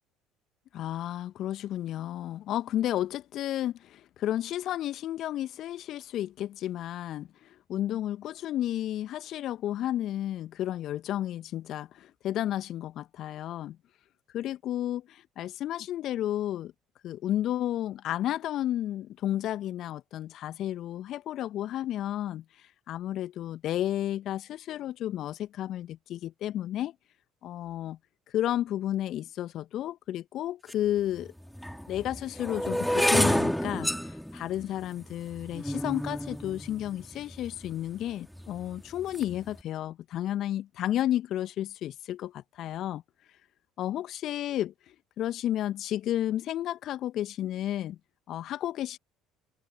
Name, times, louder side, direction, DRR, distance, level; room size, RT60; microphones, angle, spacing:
voice 1, 0.7-13.8 14.3-16.7 17.0-22.4 22.9-26.9 27.4-28.0 28.3-31.3 31.9-43.0 43.8-44.7 45.2-48.0 48.3-49.0, left 12 dB, 55° left, 1.7 m, -32 dB
sound 1, 30.7-30.8 31.6-37.7 38.4-38.7 39.0-39.4, equal, ahead, 3.7 m, -29 dB
open air
figure-of-eight pair, 60°, 0 cm